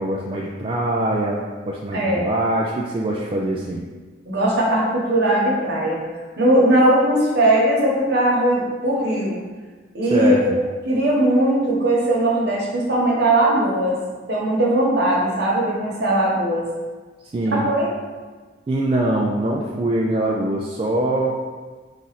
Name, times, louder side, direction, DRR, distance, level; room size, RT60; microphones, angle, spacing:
voice 1, 0.0-3.8 10.1-10.4 17.3-17.7 18.7-21.4, right 1 dB, 30° right, -2 dB, 0.3 m, -23 dB
voice 2, 1.9-2.3 4.2-6.0 6.4-9.4 9.9-10.5 10.8-14.0 14.3-16.7 17.5-17.9, right 1 dB, 60° right, -4 dB, 1.1 m, -19 dB
4.2 x 2.5 x 4.0 m, 1.4 s
head